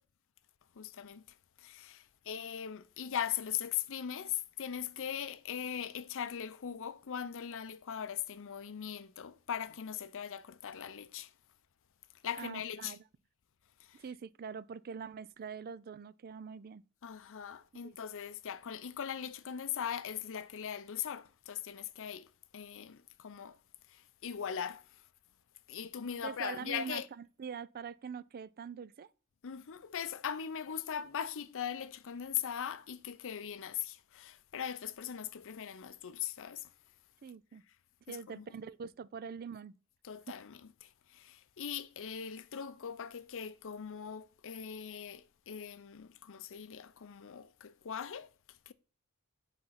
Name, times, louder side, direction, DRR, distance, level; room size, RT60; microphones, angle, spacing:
voice 1, 0.8-1.2 1.6-11.3 12.2-13.0 13.8-14.0 17.0-23.6 23.9-25.0 25.7-27.1 29.4-36.7 38.1-38.4 40.0-48.7, left 8 dB, 60° left, 0.6 m, -40 dB
voice 2, 12.4-13.0 14.0-16.8 17.8-18.0 26.2-29.1 37.2-37.6 38.1-39.7 40.3-40.4, right 6 dB, 45° right, 0.4 m, -44 dB
7.8 x 4.2 x 5.7 m
head